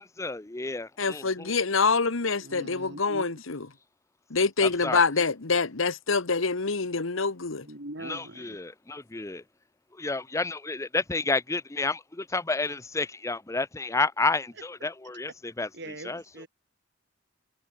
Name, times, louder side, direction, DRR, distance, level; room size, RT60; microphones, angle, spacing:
voice 1, 0.0-1.5 4.6-5.0 8.0-9.4 10.0-15.7 16.0-16.2, left 3 dB, 15° left, 0.6 m, -30 dB
voice 2, 1.0-3.6 4.3-7.7, left 4 dB, 85° left, 1.3 m, -26 dB
voice 3, 2.4-3.4 7.6-8.6 15.7-16.5, right 1 dB, 60° right, 5.6 m, -41 dB
head